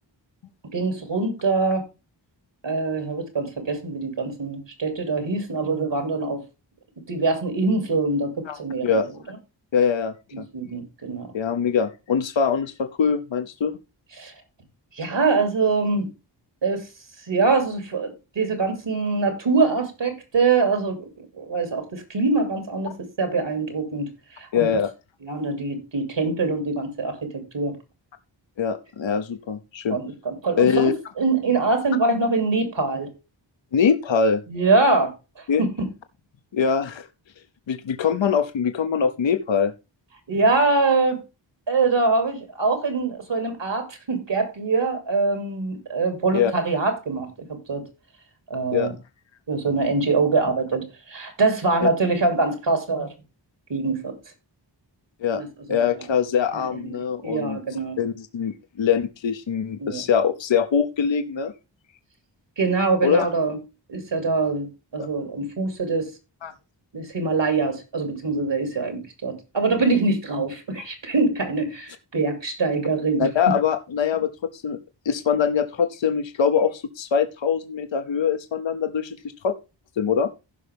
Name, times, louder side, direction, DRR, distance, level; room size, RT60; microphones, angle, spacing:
voice 1, 0.7-1.8 2.6-6.4 7.1-9.0 10.3-11.3 14.2-14.3 15.0-16.1 16.6-16.9 17.3-21.1 21.4-24.1 24.3-24.7 25.2-27.8 29.9-33.1 34.5-35.9 40.3-41.2 41.7-47.8 48.5-48.9 49.5-53.1 53.7-54.1 55.3-56.0 56.5-58.0 59.8-60.0 62.6-63.6 63.9-66.1 66.9-73.5, right 3 dB, 70° right, 2.9 m, -24 dB
voice 2, 8.5-9.1 9.7-10.4 11.3-13.8 24.5-24.9 28.6-30.0 30.6-30.9 33.7-34.4 35.5-35.6 36.5-37.1 37.7-39.7 46.3-46.5 48.7-48.9 51.8-51.9 55.2-55.4 55.7-57.6 58.0-61.5 63.0-63.3 65.0-65.1 66.4-66.5 73.2-74.8 75.1-79.2 79.4-79.5 80.0-80.3, left 7 dB, 75° left, 0.9 m, -23 dB
15.5 x 5.7 x 3.5 m
wide cardioid pair, 95°, 46 cm